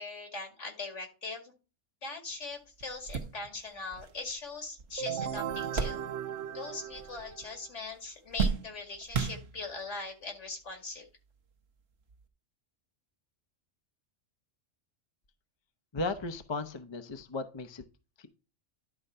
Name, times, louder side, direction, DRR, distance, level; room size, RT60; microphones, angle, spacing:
voice 1, 0.0-1.5 2.0-6.0 6.5-11.1, left 3 dB, 70° left, 3 dB, 2.4 m, -41 dB
sound 1, 2.3-2.4 2.8-6.6 6.9-7.6 7.9-9.9 10.7-10.8 12.1-12.2, right 5 dB, 60° right, 1.2 m, -35 dB
sound 2, 5.0-7.7, right 9 dB, 75° right, 0.9 m, -37 dB
voice 2, 15.9-17.8 18.2-18.3, left 3 dB, 30° left, 9 dB, 0.6 m, -36 dB
11.0 x 3.8 x 5.5 m, 0.32 s
omnidirectional pair, 1.3 m